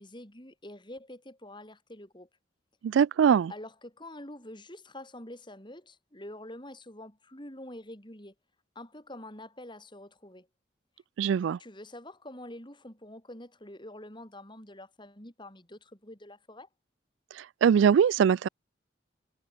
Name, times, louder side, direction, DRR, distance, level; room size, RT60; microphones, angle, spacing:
voice 1, 0.0-2.3 3.5-8.3 8.7-10.5 11.6-16.7, left 1 dB, 25° left, 6.7 m, -46 dB
voice 2, 2.8-3.5 11.2-11.6 17.4-18.5, right 7 dB, 75° right, 0.3 m, -22 dB
head